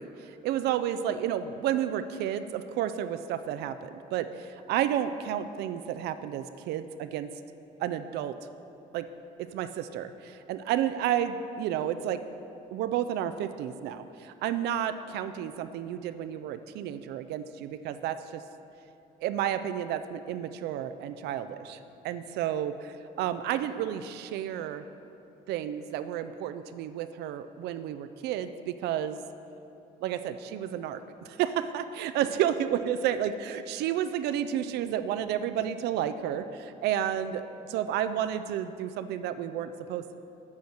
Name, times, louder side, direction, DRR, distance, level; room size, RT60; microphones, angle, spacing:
voice 1, 0.0-7.3 7.8-8.4 8.9-9.1 9.4-12.2 12.7-18.4 19.2-21.8 22.0-24.9 25.5-29.2 30.0-40.1, right 10 dB, 75° right, 11 dB, 0.4 m, -31 dB
8.3 x 4.4 x 6.5 m, 2.9 s
cardioid pair, 110°, 17 cm